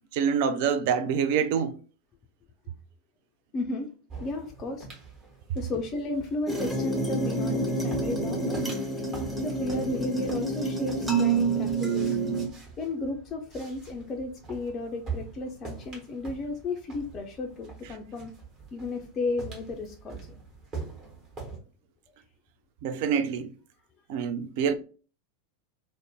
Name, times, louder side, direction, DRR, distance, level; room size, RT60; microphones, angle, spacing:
voice 1, 0.1-1.8 22.8-23.5 24.1-24.7, right 7 dB, 50° right, 0.3 m, -26 dB
voice 2, 3.5-3.9 4.2-4.9 5.5-8.6 9.4-12.2 12.8-18.3 18.7-20.4, left 2 dB, 30° left, 0.3 m, -33 dB
sound 1, 4.1-21.6, right 4 dB, 35° right, 1.1 m, -44 dB
sound 2, 6.5-12.5, right 3 dB, 5° right, 0.7 m, -28 dB
2.6 x 2.0 x 2.8 m
figure-of-eight pair, 85°, 0 cm